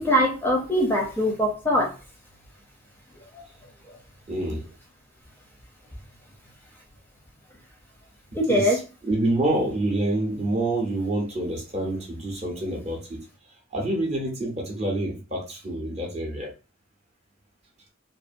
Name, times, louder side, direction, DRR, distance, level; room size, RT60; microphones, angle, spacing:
voice 1, 0.0-1.9 3.3-3.4 8.3-8.8, equal, 10° left, 0.6 m, -22 dB
voice 2, 4.3-4.7 8.5-8.8 9.1-13.2 13.7-16.5, right 1 dB, 30° right, 0.7 m, -27 dB
2.6 x 2.5 x 2.6 m
head